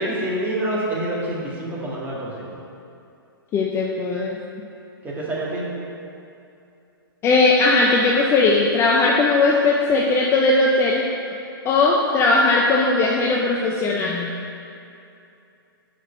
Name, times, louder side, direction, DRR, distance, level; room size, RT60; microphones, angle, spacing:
voice 1, 0.0-2.5 5.0-5.7, right 1 dB, 15° right, -6 dB, 1.9 m, -27 dB
voice 2, 3.5-4.4 7.2-11.0 11.6-14.3, left 3 dB, 20° left, -2 dB, 0.6 m, -18 dB
6.2 x 5.0 x 6.7 m, 2.6 s
hypercardioid pair, 125°, 12 cm